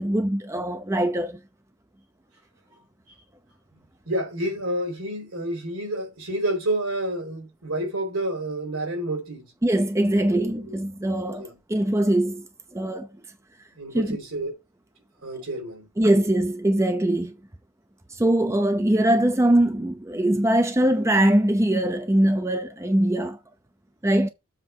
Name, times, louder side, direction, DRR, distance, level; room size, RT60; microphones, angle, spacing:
voice 1, 0.0-1.4 9.6-13.1 13.9-14.2 16.0-17.4 18.1-23.4 24.0-24.3, right 1 dB, 15° right, 0.6 m, -22 dB
voice 2, 4.1-9.5 10.3-10.8 11.2-11.6 13.7-14.5 15.2-15.9, right 1 dB, 80° right, 4.6 m, -29 dB
7.4 x 3.5 x 6.0 m
head